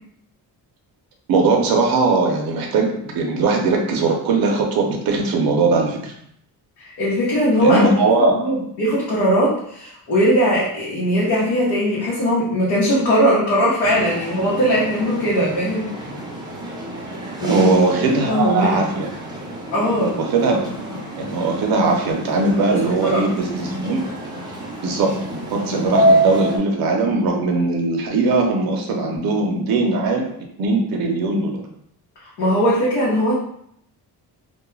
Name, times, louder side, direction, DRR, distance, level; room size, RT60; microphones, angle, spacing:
voice 1, 1.3-6.1 7.6-8.5 17.4-19.1 20.2-24.1 24.8-25.2 25.5-30.3 30.6-31.6, right 3 dB, 65° right, 2 dB, 0.5 m, -20 dB
voice 2, 6.8-7.9 8.2-15.9 17.4-17.7 18.1-18.8 19.7-20.2 23.0-23.2 32.2-33.3, equal, 75° left, -7 dB, 0.9 m, -19 dB
sound 1, 13.8-26.6, right 1 dB, 10° right, 0.4 m, -27 dB
2.2 x 2.1 x 3.0 m, 0.71 s
cardioid pair, 140°, 40 cm